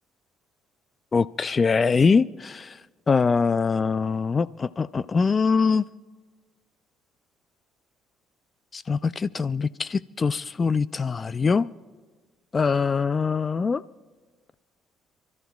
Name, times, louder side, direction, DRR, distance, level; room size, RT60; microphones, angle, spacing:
voice 1, 1.1-2.8 3.1-5.8 8.7-11.7 12.5-13.8, left 5 dB, 35° left, 17 dB, 0.3 m, -23 dB
29.5 x 13.0 x 2.3 m, 1.4 s
supercardioid pair, 70°, 0 cm